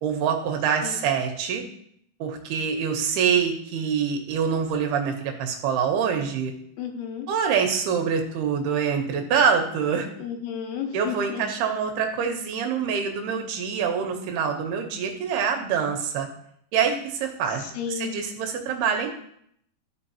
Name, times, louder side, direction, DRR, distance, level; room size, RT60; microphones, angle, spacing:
voice 1, 0.0-1.6 2.2-6.5 7.3-10.1 10.9-16.3 16.7-19.1, right 7 dB, 80° right, 3 dB, 3.0 m, -25 dB
voice 2, 6.8-7.3 10.2-11.4 17.7-18.1, left 8 dB, 90° left, 4 dB, 3.1 m, -32 dB
13.0 x 5.4 x 2.9 m, 0.68 s
omnidirectional pair, 4.6 m